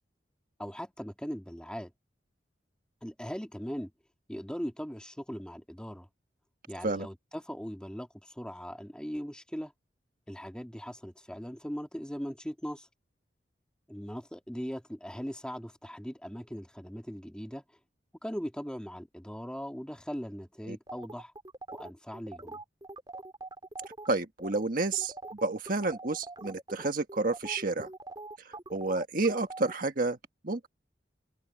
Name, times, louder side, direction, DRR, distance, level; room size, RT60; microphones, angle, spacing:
voice 1, 0.6-1.9 3.0-3.9 4.3-6.1 6.7-9.7 10.3-12.9 13.9-17.6 18.2-21.3 21.7-22.6, equal, 5° left, 2.8 m, -39 dB
sound 1, 20.9-24.1 24.4-24.6 24.9-29.7, right 2 dB, 25° right, 4.3 m, -44 dB
voice 2, 24.1-25.1 25.4-27.9 28.4-30.2 30.4-30.7, right 3 dB, 55° right, 1.5 m, -30 dB
head